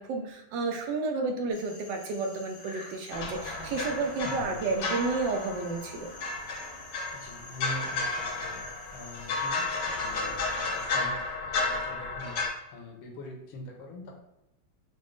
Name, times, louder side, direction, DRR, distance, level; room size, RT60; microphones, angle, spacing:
voice 1, 0.0-6.1, right 3 dB, 75° right, 4 dB, 1.1 m, -31 dB
sound 1, 1.5-10.9, left 2 dB, 45° left, 0.8 m, -48 dB
sound 2, 3.1-12.5, left 3 dB, 65° left, 1.1 m, -33 dB
voice 2, 4.2-4.6 7.1-11.2 11.5-12.4 12.7-14.1, left 2 dB, 80° left, 0 dB, 1.6 m, -43 dB
5.0 x 2.0 x 3.4 m, 0.88 s
omnidirectional pair, 2.2 m